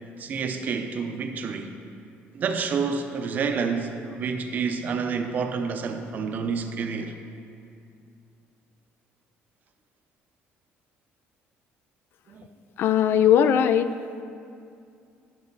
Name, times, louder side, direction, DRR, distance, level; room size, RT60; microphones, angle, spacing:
voice 1, 0.2-1.7 2.3-7.1 12.3-12.5, right 5 dB, 40° right, 6 dB, 0.6 m, -29 dB
voice 2, 12.8-13.9, left 9 dB, 60° left, 11 dB, 0.3 m, -19 dB
10.5 x 6.2 x 3.9 m, 2.4 s
cardioid pair, 145°, 4 cm